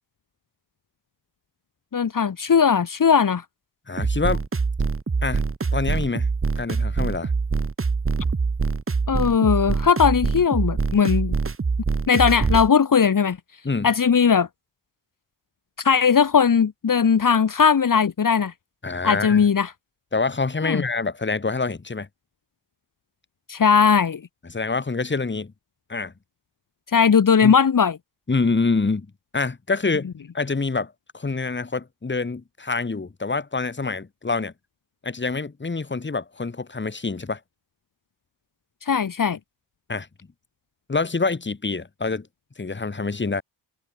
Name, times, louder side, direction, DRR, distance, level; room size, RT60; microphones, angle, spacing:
voice 1, 1.9-3.4 9.1-11.3 12.1-13.4 13.8-14.5 15.8-18.5 19.0-19.7 20.6-20.8 23.5-24.2 26.9-27.9 38.8-39.4, left 6 dB, 45° left, 2.4 m, -18 dB
voice 2, 3.9-4.4 5.2-5.4 5.7-6.3 6.6-7.3 13.6-13.9 18.8-19.4 20.1-22.1 24.5-25.5 25.9-26.1 27.4-27.5 28.3-29.1 29.3-30.1 30.3-34.5 35.0-37.4 39.9-40.1 40.9-42.3 42.6-43.4, left 4 dB, 25° left, 3.2 m, -26 dB
sound 1, 4.0-12.7, right 4 dB, 30° right, 2.3 m, -24 dB
open air
cardioid pair, 100°, 46 cm